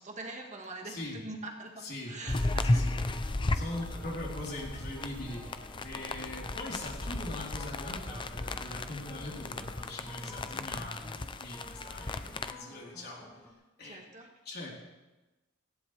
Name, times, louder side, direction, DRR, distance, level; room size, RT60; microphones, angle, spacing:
voice 1, 0.0-2.9 13.8-14.3, right 2 dB, 35° right, 1 dB, 1.8 m, -44 dB
voice 2, 0.8-1.2 1.8-2.2 2.6-2.9 3.5-13.3 13.8-14.0 14.4-14.7, left 1 dB, 50° left, -3 dB, 4.1 m, -41 dB
sound 1, 2.2-13.5, left 2 dB, 5° left, 1.7 m, -51 dB
sound 2, 2.3-12.5, left 2 dB, 25° left, 0.5 m, -35 dB
sound 3, 4.0-8.4, equal, 10° right, 0.9 m, -50 dB
18.5 x 16.0 x 3.4 m, 1.1 s
head